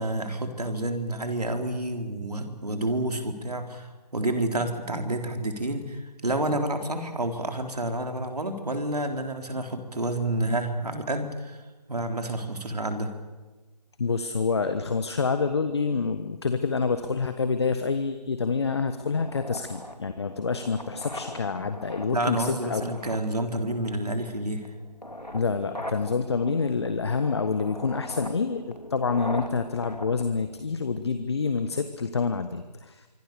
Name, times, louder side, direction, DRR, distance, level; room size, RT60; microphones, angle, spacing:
voice 1, 0.0-11.6 11.9-13.1 22.1-24.7, right 1 dB, 65° right, 5 dB, 4.3 m, -29 dB
voice 2, 14.0-22.9 25.3-33.1, left 4 dB, 40° left, 9 dB, 1.4 m, -27 dB
sound 1, 19.1-31.1, left 1 dB, 90° left, 3.4 m, -41 dB
26.0 x 25.0 x 6.9 m, 1.2 s
figure-of-eight pair, 155°, 21 cm